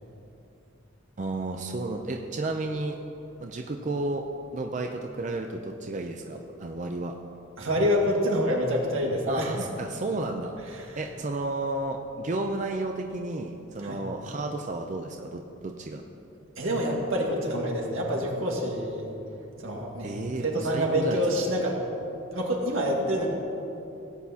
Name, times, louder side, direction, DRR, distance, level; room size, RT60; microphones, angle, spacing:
voice 1, 1.2-3.0 3.4-4.3 4.5-7.2 9.3-10.5 11.0-16.0 20.0-21.2, right 2 dB, 40° right, 3 dB, 0.5 m, -32 dB
voice 2, 7.6-9.5 10.7-11.0 13.8-14.0 16.6-19.1 19.6-20.1 20.4-21.8 22.3-23.3, equal, 85° right, -1 dB, 1.8 m, -27 dB
17.0 x 8.2 x 2.8 m, 2.8 s
head